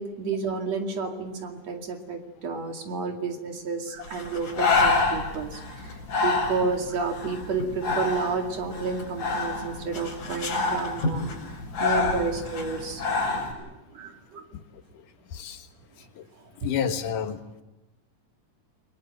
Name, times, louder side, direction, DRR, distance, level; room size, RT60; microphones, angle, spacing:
voice 1, 0.0-11.3 11.8-14.4, right 4 dB, 55° right, 4 dB, 3.4 m, -31 dB
Breathing, 4.0-13.5, left 3 dB, 65° left, 8.1 m, -28 dB
voice 2, 15.3-15.7 16.2-16.3 16.6-17.6, left 7 dB, 85° left, 8 dB, 3.0 m, -30 dB
29.5 x 21.0 x 7.9 m, 1.0 s
omnidirectional pair, 3.7 m